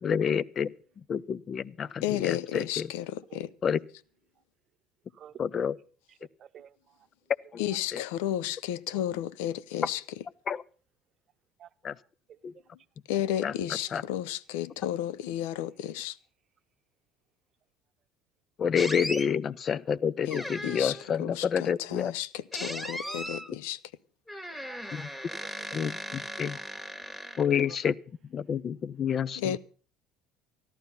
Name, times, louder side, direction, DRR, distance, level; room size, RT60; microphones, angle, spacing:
voice 1, 0.0-0.7 1.1-2.9 3.6-3.8 5.4-5.8 7.5-7.6 7.9-8.0 10.5-10.6 11.8-12.0 12.4-12.5 13.4-14.0 18.6-22.1 24.9-25.1 25.7-26.6 27.4-28.0 28.3-29.6, left 7 dB, 40° left, 0.6 m, -29 dB
voice 2, 2.0-3.5 7.6-10.0 13.1-16.2 20.3-20.9 21.2-23.8 29.4-29.6, left 12 dB, 80° left, 0.7 m, -32 dB
voice 3, 6.4-7.0 8.9-9.0 11.6-11.9 23.0-23.4 24.7-25.7, right 10 dB, 50° right, 0.8 m, -51 dB
sound 1, 18.8-19.3 20.3-21.1 22.5-23.5 24.3-27.7, equal, 15° left, 1.8 m, -37 dB
14.0 x 12.0 x 5.6 m
hypercardioid pair, 80°, 0 cm